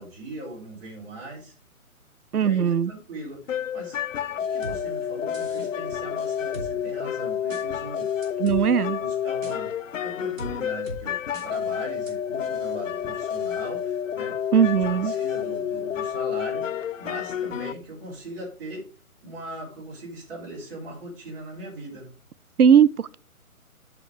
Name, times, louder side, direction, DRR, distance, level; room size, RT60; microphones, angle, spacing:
voice 1, 0.0-1.5 2.4-3.4 3.7-4.0 4.3-8.1 9.0-9.7 10.0-18.8 19.2-22.1, right 1 dB, 40° right, 4.1 m, -40 dB
voice 2, 2.3-2.9 8.4-9.0 14.5-15.1 22.6-23.2, right 8 dB, 85° right, 0.6 m, -19 dB
sound 1, 3.5-17.7, left 9 dB, 60° left, 0.5 m, -29 dB
sound 2, 4.6-4.8 5.3-5.7 6.5-6.7 7.5-7.6 8.2-8.6 9.4-9.6 10.4-10.5 10.9-11.0 11.3-11.5 12.1-12.2, right 1 dB, 65° right, 2.9 m, -37 dB
8.2 x 5.2 x 4.9 m
figure-of-eight pair, 140°, 43 cm